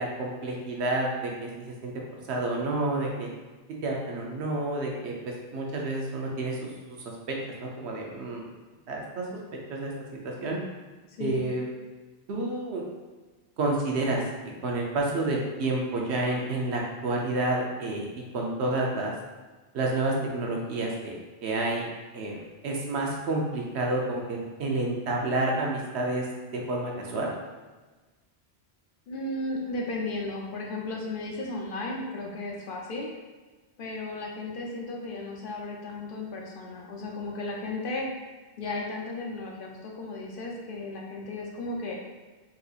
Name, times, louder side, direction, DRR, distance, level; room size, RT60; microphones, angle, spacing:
voice 1, 0.0-1.9 2.3-3.3 3.8-6.7 7.3-7.4 7.6-8.4 8.9-9.3 9.7-9.9 10.2-10.6 11.2-11.6 12.3-12.8 13.6-14.2 14.6-19.1 19.7-21.2 21.4-21.8 22.1-26.3 26.5-27.3, right 2 dB, 80° right, -1 dB, 0.9 m, -29 dB
voice 2, 29.1-33.1 33.8-38.1 38.6-42.0, left 2 dB, 60° left, -1 dB, 0.7 m, -34 dB
4.0 x 2.7 x 2.4 m, 1.3 s
omnidirectional pair, 1.1 m